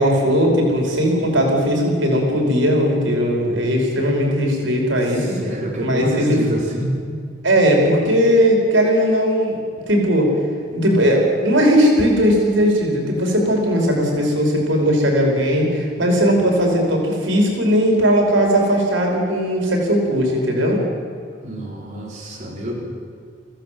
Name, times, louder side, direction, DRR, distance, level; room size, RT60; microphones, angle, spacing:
voice 1, 0.0-5.4 5.8-6.4 7.4-9.6 9.9-10.3 10.7-20.8, equal, 90° right, 0 dB, 5.2 m, -18 dB
voice 2, 5.4-7.0 21.4-22.8, right 1 dB, 40° right, -3 dB, 4.5 m, -27 dB
24.5 x 16.0 x 7.9 m, 2.2 s
head